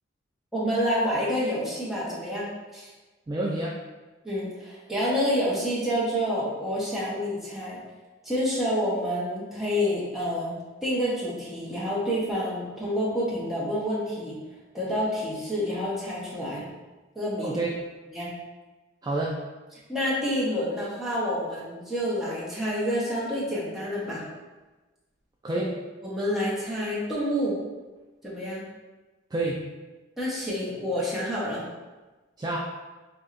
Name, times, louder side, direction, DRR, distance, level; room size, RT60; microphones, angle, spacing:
voice 1, 0.5-2.9 4.2-7.8 8.2-10.6 10.8-14.4 14.7-16.6 17.1-17.6 18.1-18.3 19.9-24.2 25.6-25.7 26.0-27.6 28.2-28.6 30.2-31.6, equal, ahead, -8 dB, 0.9 m, -28 dB
voice 2, 3.3-3.8 17.4-17.7 19.0-19.3 25.4-25.7 29.3-29.6 32.4-32.6, right 2 dB, 20° right, -4 dB, 0.3 m, -28 dB
4.3 x 2.7 x 2.5 m, 1.2 s
head